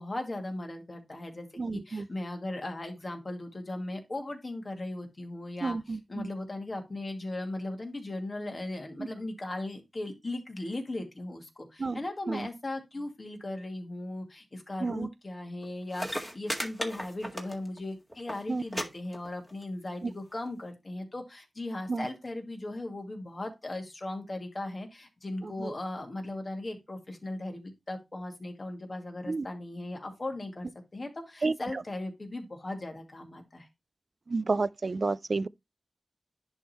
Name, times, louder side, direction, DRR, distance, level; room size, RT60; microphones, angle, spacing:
voice 1, 0.0-33.7, left 2 dB, 40° left, 2.3 m, -38 dB
voice 2, 1.6-2.1 5.6-6.3 9.0-9.1 11.8-12.0 12.3-12.5 14.8-15.1 18.5-18.6 20.0-20.1 21.9-22.1 25.4-25.7 29.3-29.5 31.4-31.8 34.3-35.5, right 3 dB, 55° right, 0.4 m, -31 dB
sound 1, 15.6-15.7 15.9-17.8 18.1-18.4 18.7-18.8 19.1-19.6 20.5-20.6, equal, 5° left, 1.8 m, -35 dB
10.5 x 3.6 x 4.3 m
wide cardioid pair, 75°, 0 cm